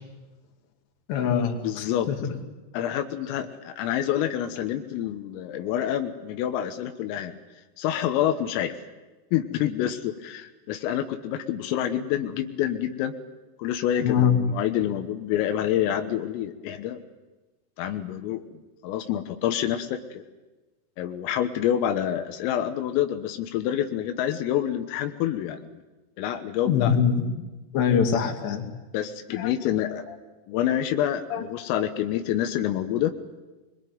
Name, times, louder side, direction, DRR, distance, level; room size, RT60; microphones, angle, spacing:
voice 1, 1.1-2.2 14.0-14.5 26.7-27.3 27.7-28.6 29.4-29.5 31.3-31.4, left 7 dB, 60° left, 3 dB, 4.4 m, -23 dB
voice 2, 1.6-2.1 2.7-7.4 7.8-8.8 9.3-13.1 13.6-17.0 17.8-20.2 21.0-25.7 26.2-27.0 28.9-30.1 30.5-33.1, left 11 dB, 90° left, 6 dB, 3.9 m, -27 dB
25.0 x 22.0 x 9.5 m, 1.2 s
omnidirectional pair, 5.8 m